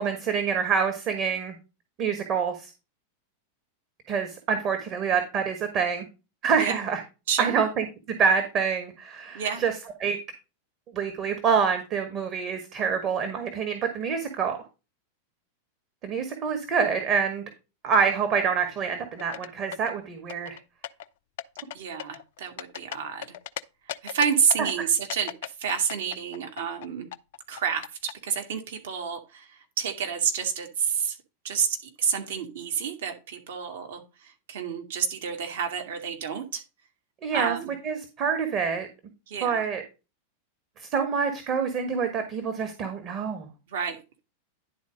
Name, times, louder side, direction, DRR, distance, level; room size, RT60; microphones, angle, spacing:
voice 1, 0.0-1.6 2.0-2.7 4.1-6.1 6.4-7.0 7.4-7.9 8.2-9.7 10.0-10.2 10.9-14.6 16.0-17.4 17.8-20.6 37.2-37.6 37.8-38.9 39.4-39.8 40.8-43.5, right 6 dB, 35° right, 6 dB, 1.4 m, -26 dB
voice 2, 7.3-7.6 9.3-9.6 21.7-23.3 23.9-27.1 27.5-31.2 31.4-36.6 37.3-37.7 39.3-39.6 43.7-44.2, right 7 dB, 60° right, 4 dB, 1.8 m, -29 dB
sound 1, 19.2-19.9 20.3-21.1 21.4-21.7 22.0-23.6 23.9-24.7 25.1-26.9 27.1-28.1, left 11 dB, 55° left, 0.4 m, -36 dB
10.5 x 4.1 x 5.0 m, 0.29 s
figure-of-eight pair, 90°, 0 cm